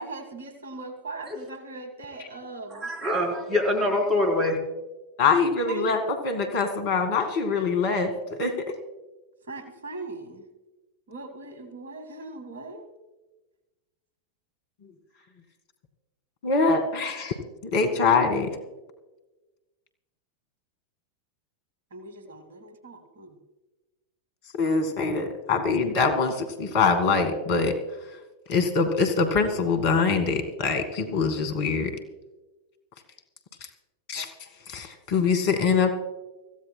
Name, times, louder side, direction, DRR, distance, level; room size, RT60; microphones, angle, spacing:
voice 1, 0.0-2.9 5.7-6.0 9.5-10.4 11.1-12.8 21.9-23.3 34.2-34.3, right 2 dB, 65° right, 9 dB, 1.7 m, -39 dB
voice 2, 2.7-4.6, left 1 dB, 25° right, 3 dB, 4.0 m, -25 dB
voice 3, 5.2-8.7 16.4-17.3 17.7-18.5 24.6-27.7 28.5-31.9 34.1-34.3 34.7-35.9, left 4 dB, 50° left, 7 dB, 1.9 m, -24 dB
24.5 x 15.5 x 2.2 m, 1.1 s
figure-of-eight pair, 90°, 0 cm